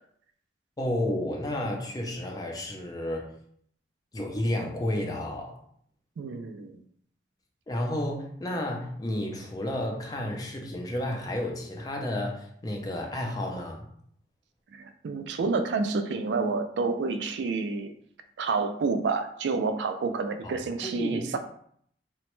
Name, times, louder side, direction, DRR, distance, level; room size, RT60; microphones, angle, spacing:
voice 1, 0.8-3.3 4.1-5.6 7.7-13.9 20.4-21.4, left 1 dB, 20° left, 1 dB, 0.4 m, -31 dB
voice 2, 6.2-6.8 14.7-17.9 18.4-21.4, right 4 dB, 80° right, 8 dB, 0.3 m, -29 dB
2.9 x 2.1 x 3.0 m, 0.64 s
head